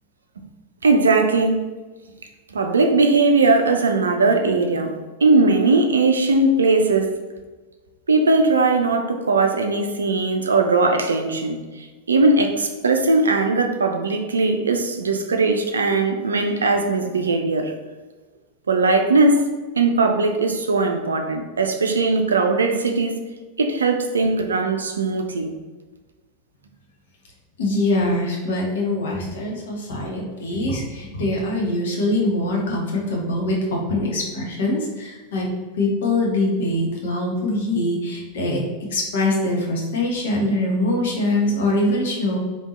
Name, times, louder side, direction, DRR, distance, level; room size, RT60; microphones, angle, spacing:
voice 1, 0.8-1.6 2.5-4.9 5.2-7.2 8.1-17.7 18.7-19.5 19.8-23.2 23.6-25.5, right 3 dB, 70° right, 5 dB, 0.4 m, -19 dB
voice 2, 27.6-35.5 35.7-38.6 38.9-42.4, left 1 dB, 60° left, -2 dB, 0.9 m, -23 dB
3.4 x 2.8 x 3.0 m, 1.3 s
figure-of-eight pair, 90°, 0 cm